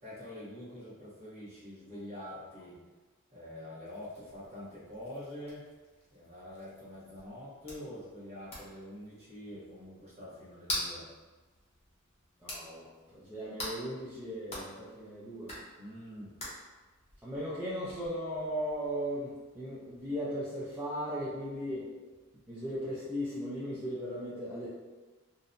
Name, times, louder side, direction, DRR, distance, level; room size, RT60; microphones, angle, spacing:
voice 1, 0.0-2.8 3.3-5.6 6.1-11.1 15.8-16.3, left 1 dB, 30° right, -8 dB, 0.9 m, -45 dB
sound 1, 3.8-20.2, left 1 dB, 30° left, 0.7 m, -46 dB
voice 2, 12.4-15.5 17.2-21.9 22.5-24.7, equal, 10° right, -10 dB, 0.4 m, -37 dB
2.7 x 2.1 x 2.5 m, 1.3 s
head